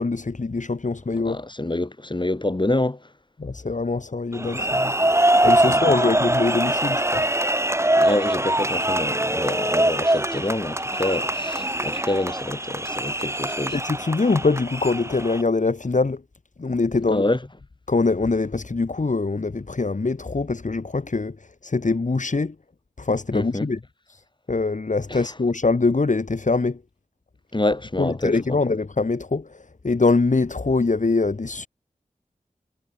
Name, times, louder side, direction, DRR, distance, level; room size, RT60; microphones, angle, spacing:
voice 1, 0.0-1.4 3.4-4.9 5.4-7.3 13.7-16.2 16.6-17.2 17.9-22.5 23.0-23.8 24.1-24.2 24.5-26.8 28.0-31.7, left 3 dB, 60° left, 3.0 m, -23 dB
voice 2, 1.3-3.0 5.7-5.8 8.0-13.8 17.1-17.4 23.3-23.7 25.1-25.2 27.5-28.6, left 2 dB, 35° left, 7.1 m, -26 dB
sound 1, 4.3-15.4, right 1 dB, 20° right, 3.6 m, -23 dB
wide cardioid pair, 50°, 14 cm